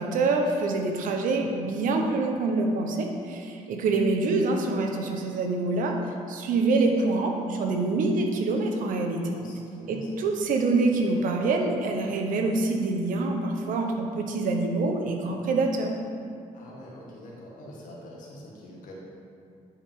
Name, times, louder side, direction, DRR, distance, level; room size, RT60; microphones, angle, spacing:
voice 1, 0.0-6.0 6.3-9.4 9.9-15.9, right 3 dB, 75° right, 3 dB, 0.9 m, -26 dB
voice 2, 9.3-10.1 16.5-18.9, left 1 dB, 75° left, -3 dB, 1.8 m, -45 dB
9.7 x 4.9 x 3.7 m, 2.4 s
cardioid pair, 110°, 14 cm